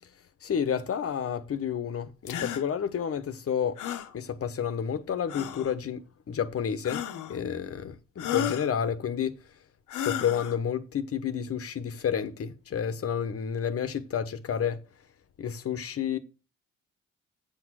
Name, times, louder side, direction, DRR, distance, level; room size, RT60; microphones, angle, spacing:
voice 1, 0.4-3.8 4.1-7.0 7.3-9.4 10.0-14.8 15.4-16.2, left 8 dB, 50° left, 1.2 m, -30 dB
sound 1, 2.3-2.6 3.8-4.1 5.3-5.7 6.8-7.4 8.2-8.7 9.9-10.6, left 10 dB, 85° left, 1.1 m, -33 dB
8.5 x 6.3 x 6.3 m
cardioid pair, 90°, 30 cm